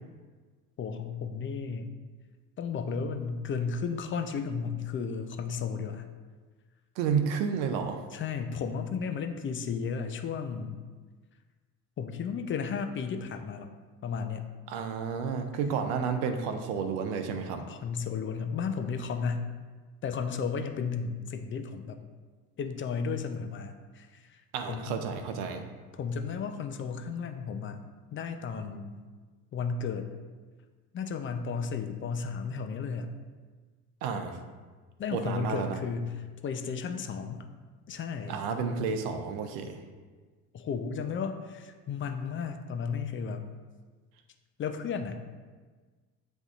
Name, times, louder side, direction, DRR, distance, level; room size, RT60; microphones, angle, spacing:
voice 1, 0.8-1.9 2.6-6.0 8.1-10.8 12.0-13.7 14.0-14.5 17.7-19.5 20.0-22.0 22.6-24.4 24.7-24.9 25.9-27.8 28.1-29.0 29.5-30.1 30.9-33.2 35.0-37.5 37.9-38.3 40.5-43.4 44.6-45.2, left 5 dB, 30° left, 6 dB, 0.4 m, -34 dB
voice 2, 7.0-8.0 14.7-17.6 24.5-25.6 34.0-34.4 35.1-35.8 38.3-39.8, right 6 dB, 70° right, 7 dB, 0.7 m, -31 dB
7.7 x 2.6 x 2.4 m, 1.4 s
hypercardioid pair, 70°, 43 cm